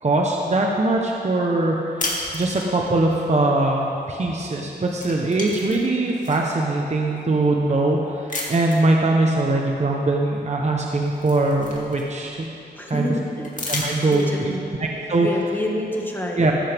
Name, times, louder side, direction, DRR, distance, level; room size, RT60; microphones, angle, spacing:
voice 1, 0.0-1.8 2.3-12.5 12.9-13.1 13.7-14.5 14.8-15.3 16.4-16.5, right 2 dB, 40° right, 0 dB, 1.1 m, -21 dB
sound 1, 2.0-3.0 4.4-4.6 4.9-6.5 7.2-7.3 8.3-8.9 10.3-10.4 10.8-12.4 13.4-14.5, left 2 dB, 45° left, 2.4 m, -32 dB
voice 2, 12.7-13.5 13.7-14.6 15.2-16.5, left 1 dB, 10° left, -1 dB, 1.9 m, -28 dB
14.0 x 14.0 x 3.6 m, 2.9 s
cardioid pair, 80°, 17 cm